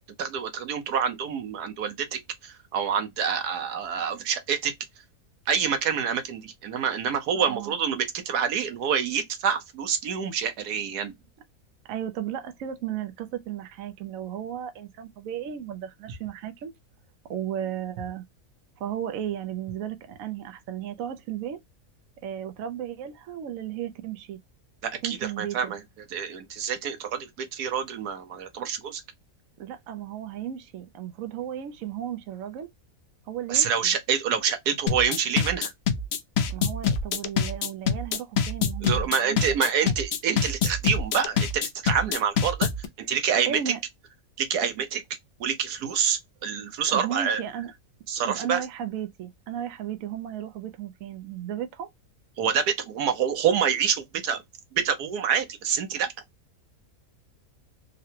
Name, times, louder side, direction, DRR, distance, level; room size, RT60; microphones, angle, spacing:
voice 1, 0.2-4.7 5.5-11.1 24.8-25.8 26.1-29.0 33.5-35.7 38.8-42.7 43.0-43.7 44.4-45.0 45.4-47.4 48.1-48.6 52.4-54.4 54.7-56.1, right 7 dB, 85° right, 1.4 m, -27 dB
voice 2, 7.3-7.8 11.9-16.7 17.3-18.2 18.8-21.6 22.2-24.4 25.0-25.7 29.6-32.7 33.3-33.9 36.5-39.4 43.4-43.8 46.9-47.7 48.2-51.9, right 10 dB, 65° right, 0.9 m, -34 dB
sound 1, 34.9-42.9, left 6 dB, 65° left, 0.6 m, -25 dB
3.8 x 2.1 x 2.7 m
omnidirectional pair, 1.6 m